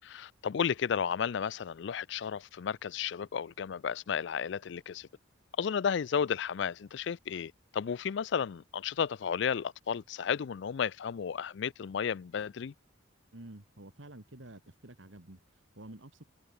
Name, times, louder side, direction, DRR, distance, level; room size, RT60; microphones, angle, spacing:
voice 1, 0.0-5.1 5.6-12.7, left 7 dB, 60° left, 0.4 m, -33 dB
voice 2, 13.3-16.2, right 1 dB, 70° right, 2.1 m, -50 dB
head